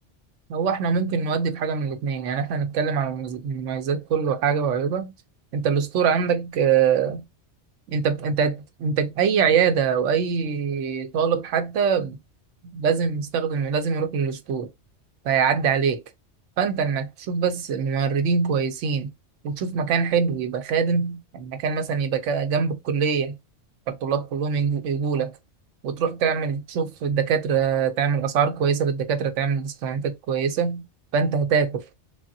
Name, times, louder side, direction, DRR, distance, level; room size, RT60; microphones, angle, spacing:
voice 1, 0.5-5.1 5.5-7.2 7.9-12.2 12.6-14.7 15.2-16.0 16.6-19.1 19.4-23.4 23.9-25.3 25.8-30.8 31.1-31.8, right 6 dB, 85° right, 1.0 m, -24 dB
3.4 x 2.0 x 2.6 m
omnidirectional pair, 1.2 m